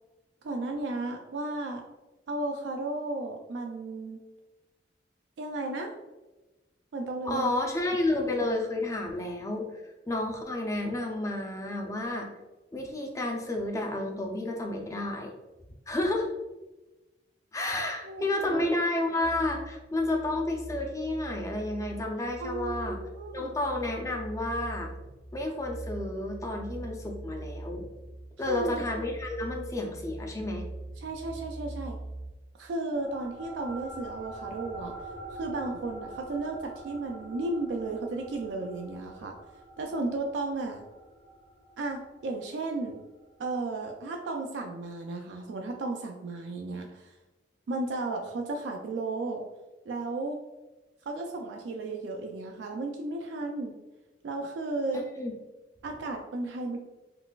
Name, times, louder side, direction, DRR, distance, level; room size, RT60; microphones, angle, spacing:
voice 1, 0.4-1.8 2.3-4.2 5.4-5.9 6.9-7.5 18.0-18.8 22.4-23.5 28.5-28.8 31.0-32.0 32.6-34.9 35.3-39.3 39.8-40.8 41.8-43.0 43.4-47.1 47.7-49.4 49.9-50.4 51.1-53.7 54.2-55.0 55.8-56.8, right 2 dB, 85° right, 2 dB, 0.4 m, -34 dB
voice 2, 7.2-12.3 12.7-15.3 15.9-16.3 17.5-23.0 23.3-24.9 25.3-27.8 28.4-30.6 54.9-55.3, left 2 dB, 20° left, 1 dB, 0.4 m, -31 dB
sound 1, 19.2-32.3, right 2 dB, 75° left, 1.2 m, -42 dB
sound 2, 32.9-43.7, right 2 dB, 40° left, 0.9 m, -45 dB
3.9 x 2.3 x 2.3 m, 1.1 s
head